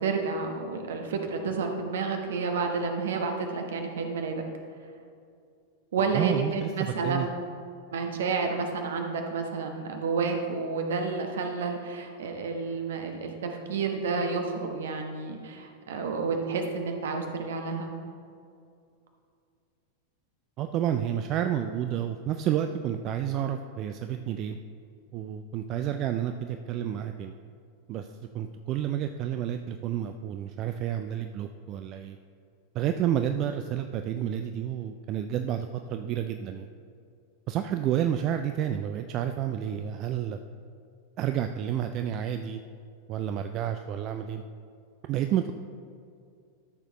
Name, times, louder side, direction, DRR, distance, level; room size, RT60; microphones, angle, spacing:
voice 1, 0.0-4.4 5.9-7.3 7.9-17.9, right 4 dB, 60° right, 4 dB, 1.1 m, -30 dB
voice 2, 6.1-7.3 20.6-24.6 25.1-27.4 27.9-28.1 28.3-32.2 32.7-36.7 37.5-40.4 41.2-42.6 43.1-44.4 45.0-45.5, right 10 dB, 35° right, 7 dB, 0.3 m, -30 dB
13.0 x 6.6 x 3.1 m, 2.4 s
figure-of-eight pair, 90°, 0 cm